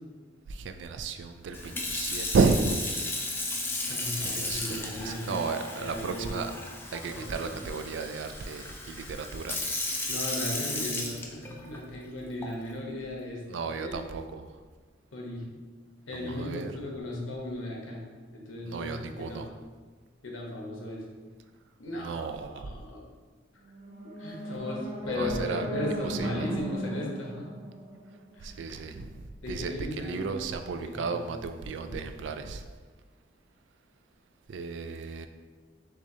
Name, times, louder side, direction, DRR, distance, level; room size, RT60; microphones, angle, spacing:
voice 1, 0.5-3.1 4.2-6.5 6.9-9.6 13.5-14.5 16.1-16.7 18.6-19.5 22.0-22.7 25.2-25.7 26.0-26.5 28.4-32.6 34.5-35.3, right 4 dB, 70° right, 8 dB, 0.3 m, -33 dB
Sink (filling or washing) / Fill (with liquid), 1.5-11.8 12.4-12.7, left 2 dB, 10° left, 0.4 m, -35 dB
voice 2, 3.9-5.4 5.7-6.4 7.1-7.6 10.1-14.1 15.1-15.5 16.1-18.1 18.3-19.4 20.2-21.0 21.8-22.3 22.5-23.1 24.2-27.5 28.3-28.6 29.4-30.4 30.7-31.3 31.8-32.3, left 1 dB, 90° left, -2 dB, 1.0 m, -36 dB
sound 1, 23.6-28.7, right 1 dB, 40° right, 0.7 m, -37 dB
6.2 x 2.5 x 2.8 m, 1.4 s
head